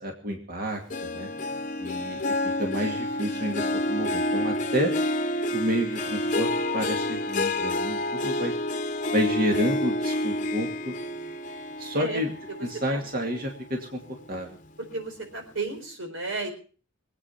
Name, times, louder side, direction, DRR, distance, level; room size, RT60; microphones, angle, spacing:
voice 1, 0.0-1.3 1.8-4.9 5.5-8.5 9.1-11.0 11.8-12.3 12.6-14.6, equal, 50° right, 2 dB, 2.3 m, -30 dB
Harp, 0.9-13.6 14.0-14.4 14.9-15.0, left 1 dB, 40° left, 0.9 m, -29 dB
voice 2, 1.1-1.6 8.3-8.4 11.9-12.2 12.9-13.0 14.9-16.5, right 3 dB, 85° right, 5 dB, 4.2 m, -34 dB
23.0 x 8.8 x 5.8 m, 0.40 s
head